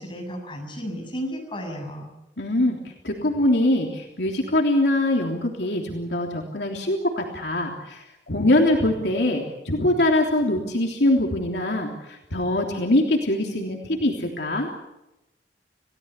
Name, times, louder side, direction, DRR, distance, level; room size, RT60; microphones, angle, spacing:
voice 1, 0.0-2.1, equal, 30° left, 2 dB, 7.6 m, -33 dB
voice 2, 2.4-2.8 3.0-14.7, left 1 dB, 70° left, 1 dB, 3.4 m, -23 dB
29.5 x 17.5 x 8.3 m, 0.94 s
head